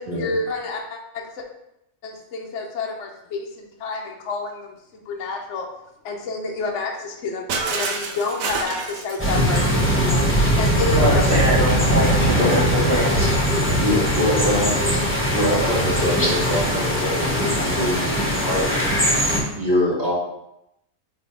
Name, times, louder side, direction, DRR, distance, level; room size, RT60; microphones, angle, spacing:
voice 1, 0.0-1.4 2.0-4.8 5.1-5.6 6.0-7.4 7.7-10.3 10.5-11.5, left 3 dB, 60° left, 1 dB, 1.1 m, -29 dB
Shatter, 7.5-10.3, right 4 dB, 75° right, 1.1 m, -29 dB
sound 1, 9.2-19.4, equal, 10° left, 1.3 m, -20 dB
voice 2, 10.9-13.3, equal, 50° right, -4 dB, 1.9 m, -23 dB
voice 3, 12.4-12.8 13.5-14.8 15.3-19.0 19.6-20.1, left 1 dB, 30° right, -7 dB, 2.2 m, -24 dB
8.9 x 3.3 x 3.3 m, 0.83 s
omnidirectional pair, 1.4 m